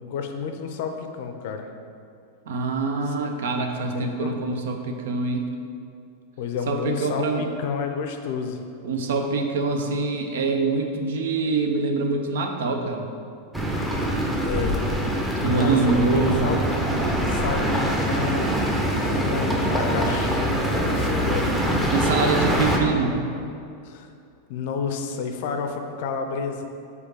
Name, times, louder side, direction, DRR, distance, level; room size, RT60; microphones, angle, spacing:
voice 1, 0.0-1.7 3.0-3.1 3.9-4.4 6.4-8.6 14.4-14.8 15.4-16.6 17.3-21.8 23.8-24.1 24.5-26.6, left 6 dB, 50° left, 6 dB, 0.5 m, -31 dB
voice 2, 2.5-5.5 6.7-7.4 8.8-13.0 15.4-16.5 21.9-23.2, right 3 dB, 60° right, 4 dB, 0.6 m, -24 dB
sound 1, 13.5-22.8, equal, 5° right, 0.8 m, -24 dB
5.0 x 4.0 x 5.6 m, 2.5 s
figure-of-eight pair, 90°, 0 cm